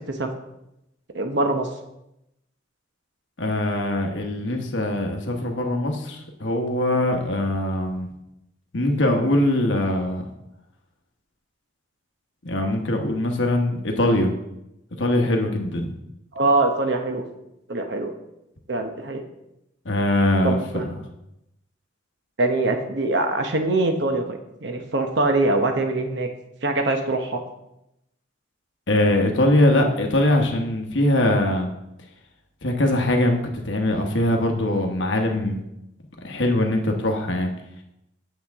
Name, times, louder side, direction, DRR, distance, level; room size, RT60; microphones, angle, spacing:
voice 1, 1.1-1.7 16.3-17.2 17.7-18.2 18.7-19.2 20.4-20.8 22.4-26.3 26.6-27.4, right 2 dB, 60° right, 5 dB, 0.8 m, -23 dB
voice 2, 3.4-8.1 8.7-10.3 12.4-14.3 15.0-15.9 19.8-20.9 28.9-31.7 32.6-35.6 36.2-37.5, left 1 dB, 70° left, 2 dB, 1.1 m, -22 dB
8.8 x 7.2 x 3.5 m, 0.86 s
head